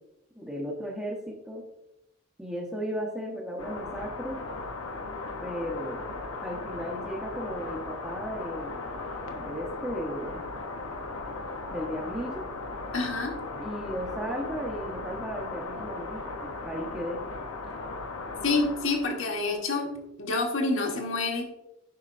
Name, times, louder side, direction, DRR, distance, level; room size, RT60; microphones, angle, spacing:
voice 1, 0.3-1.6 2.4-4.4 5.4-6.0 6.4-8.8 9.3-10.4 11.7-12.4 13.5-17.2, equal, 5° right, -5 dB, 0.8 m, -35 dB
sound 1, 3.6-19.7, left 3 dB, 90° left, 0.9 m, -37 dB
voice 2, 12.9-13.3 18.4-19.9 20.2-21.4, left 3 dB, 70° left, 1 dB, 1.4 m, -27 dB
8.5 x 5.9 x 2.5 m, 0.88 s
head